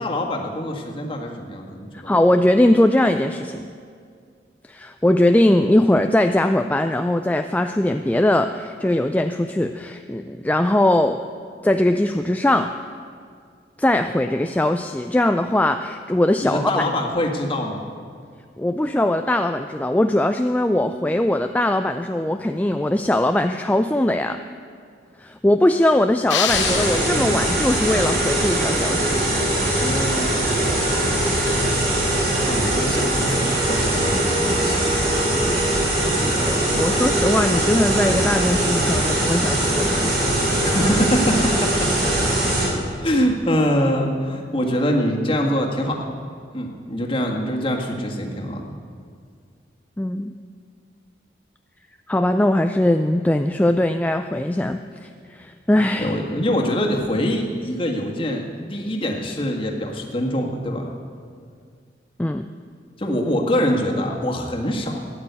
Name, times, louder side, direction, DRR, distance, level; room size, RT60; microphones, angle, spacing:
voice 1, 0.0-2.1 16.4-17.9 29.7-34.9 40.6-41.9 42.9-46.1 46.5-48.7 56.0-60.9 63.0-65.0, equal, 30° left, 0 dB, 1.8 m, -24 dB
voice 2, 1.9-3.7 4.7-11.2 11.6-12.7 13.8-16.9 18.6-24.4 25.2-29.1 35.4-35.6 36.0-40.3 50.0-50.3 52.1-56.2 62.2-62.5, left 1 dB, 10° left, 7 dB, 0.3 m, -20 dB
sound 1, 26.3-27.8, left 9 dB, 90° left, 0.8 m, -26 dB
sound 2, 26.5-42.7, right 1 dB, 60° right, 4.8 m, -21 dB
Wind instrument woodwind instrument, 33.3-38.1, right 3 dB, 25° right, 0.9 m, -31 dB
14.5 x 10.0 x 8.1 m, 2.2 s
head